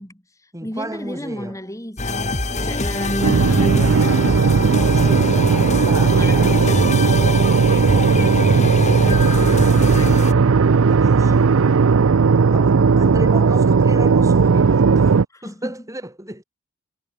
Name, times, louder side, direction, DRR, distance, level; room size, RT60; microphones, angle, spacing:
voice 1, 0.0-4.2 6.1-10.6 11.2-11.5 15.3-15.8, left 1 dB, 15° left, 6.1 m, -35 dB
voice 2, 0.5-1.6 2.6-2.9 3.7-4.1 4.7-6.6 9.0-10.3 10.6-15.1 15.4-16.4, right 1 dB, 15° right, 7.8 m, -35 dB
sound 1, 2.0-10.3, left 2 dB, 30° left, 3.8 m, -24 dB
sound 2, 3.2-15.2, right 5 dB, 65° right, 0.5 m, -16 dB
head